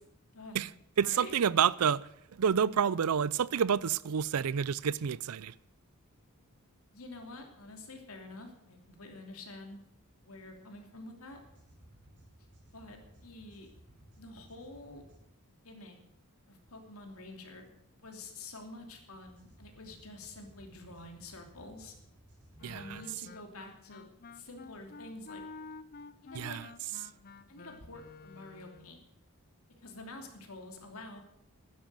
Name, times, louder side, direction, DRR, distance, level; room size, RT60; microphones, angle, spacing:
voice 1, 0.3-0.7 1.0-1.4 6.9-9.8 10.2-11.4 12.7-13.7 14.2-15.0 15.6-16.0 16.5-17.7 17.9-22.0 22.6-24.1 24.3-25.6 26.2-26.6 27.5-29.0 29.8-31.2, left 2 dB, 80° left, 3.0 m, -48 dB
voice 2, 1.0-2.0 2.4-5.5 22.6-23.0 26.3-26.7, right 7 dB, 90° right, 0.5 m, -28 dB
sound 1, 11.3-15.2 19.1-23.0, right 1 dB, 55° right, 6.6 m, -59 dB
Wind instrument woodwind instrument, 22.6-29.0, left 4 dB, 45° left, 0.5 m, -50 dB
12.5 x 10.0 x 7.6 m
head